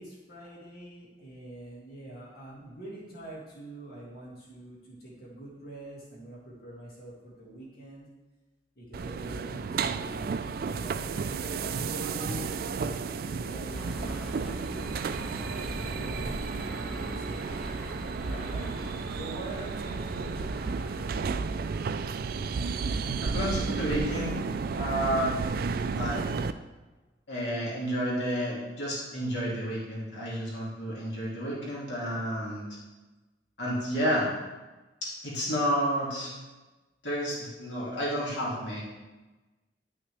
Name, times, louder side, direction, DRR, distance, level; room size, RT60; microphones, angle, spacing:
voice 1, 0.0-8.1 8.8-10.3 10.7-14.9 15.8-16.5 16.8-17.5 17.9-18.7 19.2-20.7, right 1 dB, 60° left, -5 dB, 1.9 m, -44 dB
sound 1, 8.9-26.5, right 5 dB, 55° right, 0.3 m, -32 dB
sound 2, 13.7-21.2, equal, ahead, 1.3 m, -40 dB
voice 2, 23.2-24.4 24.7-25.4 25.9-26.2 27.3-32.6 33.6-34.3 35.0-36.3 37.0-38.8, equal, 80° left, -6 dB, 2.3 m, -30 dB
11.0 x 6.2 x 3.3 m, 1.2 s
head